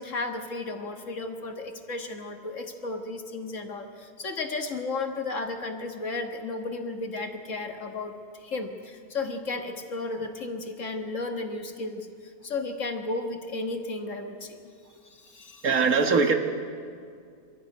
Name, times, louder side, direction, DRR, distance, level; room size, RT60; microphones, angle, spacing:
voice 1, 0.0-12.1 12.4-14.6 15.0-15.8, left 3 dB, 55° left, 4 dB, 1.8 m, -34 dB
voice 2, 15.6-16.3, right 5 dB, 65° right, 4 dB, 1.8 m, -21 dB
24.5 x 13.5 x 9.2 m, 2.3 s
omnidirectional pair, 1.6 m